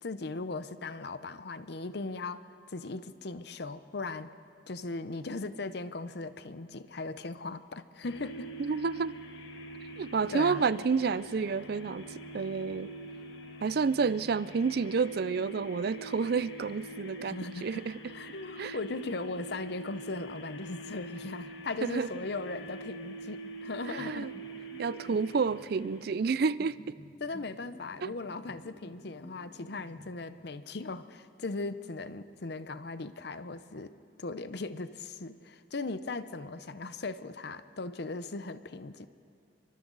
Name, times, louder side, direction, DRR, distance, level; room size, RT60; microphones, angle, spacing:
voice 1, 0.0-4.3 4.7-8.5 10.3-10.7 17.2-24.3 27.2-39.1, left 3 dB, 60° left, 13 dB, 0.7 m, -38 dB
sound 1, 8.0-26.3, right 1 dB, 75° left, 1.9 m, -45 dB
voice 2, 8.6-9.2 10.0-12.1 12.3-12.9 13.6-17.9 18.6-18.8 21.8-22.1 23.9-24.3 24.8-26.8 28.0-28.1, right 5 dB, 55° right, 17 dB, 0.4 m, -30 dB
sound 2, 24.0-30.7, equal, 30° left, 1.2 m, -52 dB
28.5 x 24.0 x 4.0 m, 2.6 s
head